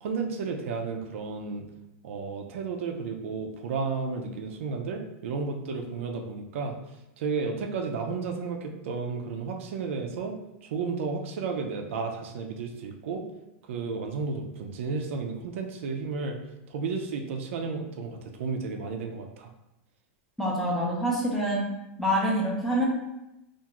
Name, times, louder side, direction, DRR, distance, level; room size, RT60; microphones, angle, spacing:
voice 1, 0.0-1.7 2.0-6.7 7.2-10.3 10.6-13.2 13.7-16.4 16.7-19.5, right 4 dB, 75° right, 3 dB, 0.4 m, -32 dB
voice 2, 20.4-21.6 22.0-22.9, equal, ahead, -5 dB, 0.4 m, -26 dB
2.4 x 2.3 x 2.9 m, 0.92 s
supercardioid pair, 170°, 7 cm